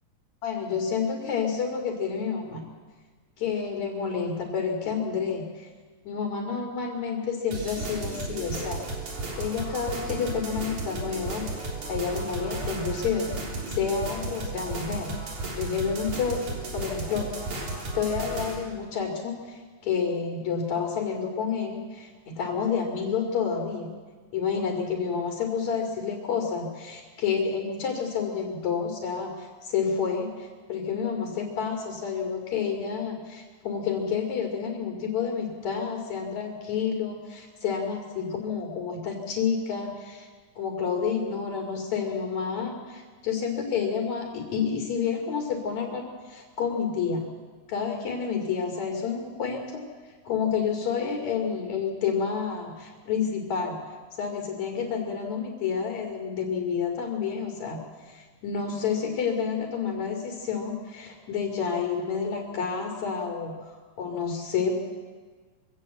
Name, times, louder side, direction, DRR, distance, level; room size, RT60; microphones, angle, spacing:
voice 1, 0.4-2.6 3.4-5.7 6.0-8.8 9.4-13.3 13.7-16.5 16.7-17.3 17.9-23.9 24.3-40.3 40.6-47.3 47.7-49.9 50.3-53.8 54.2-64.7, left 6 dB, 70° left, 1 dB, 3.7 m, -29 dB
sound 1, 7.5-18.5, right 2 dB, 75° right, 4.9 m, -34 dB
23.5 x 16.5 x 7.9 m, 1.5 s
omnidirectional pair, 3.4 m